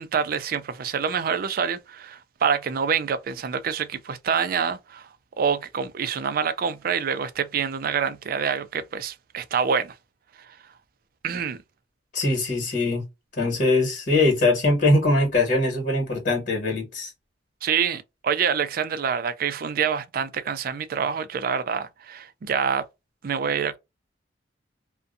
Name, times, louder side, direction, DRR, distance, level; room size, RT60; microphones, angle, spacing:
voice 1, 0.0-5.1 5.4-9.9 11.2-11.6 17.6-22.8 23.2-23.8, right 7 dB, 55° right, 0.4 m, -26 dB
voice 2, 12.1-13.0 13.4-17.1, left 2 dB, 55° left, 1.4 m, -22 dB
2.6 x 2.2 x 2.5 m
head